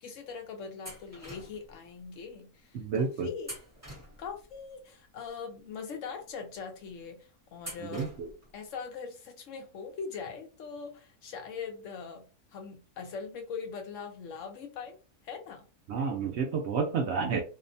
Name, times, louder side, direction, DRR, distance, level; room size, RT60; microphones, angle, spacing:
voice 1, 0.0-3.6 4.2-8.1 8.5-15.0 15.2-15.7, left 5 dB, 65° left, 0.8 m, -41 dB
sound 1, 0.8-1.7 3.4-4.5 7.6-8.5, right 1 dB, 15° right, 0.8 m, -45 dB
voice 2, 2.7-3.3 7.9-8.3 15.9-17.4, right 5 dB, 70° right, 0.6 m, -30 dB
2.8 x 2.1 x 2.5 m
omnidirectional pair, 1.6 m